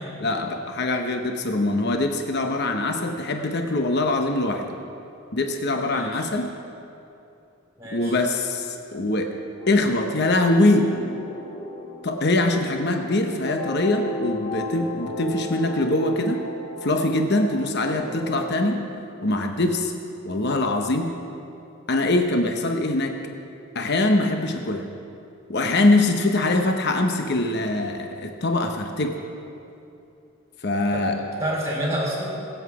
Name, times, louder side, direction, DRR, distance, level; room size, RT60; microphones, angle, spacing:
voice 1, 0.2-4.8 5.3-6.5 7.9-9.3 9.7-11.0 12.0-16.5 16.8-18.8 19.2-19.9 20.2-21.2 21.9-23.2 23.7-24.9 25.5-29.2 30.6-31.2, left 2 dB, 50° left, 4 dB, 0.9 m, -23 dB
voice 2, 5.9-6.3 7.8-8.2 30.9-32.3, right 1 dB, 15° right, -3 dB, 3.2 m, -29 dB
sound 1, 9.6-18.7, left 2 dB, 25° left, 1.1 m, -36 dB
22.5 x 8.1 x 4.8 m, 2.8 s
head